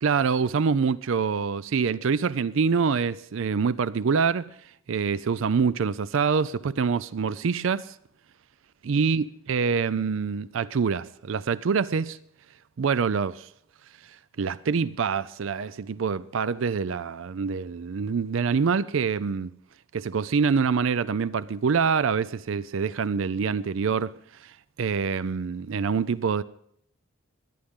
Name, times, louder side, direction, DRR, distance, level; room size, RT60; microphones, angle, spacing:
voice 1, 0.0-4.5 4.9-8.0 8.9-12.2 12.8-13.5 14.4-19.5 19.9-24.1 24.4-24.5 24.8-26.4, right 5 dB, 60° right, 0.4 m, -25 dB
21.0 x 10.0 x 3.6 m
head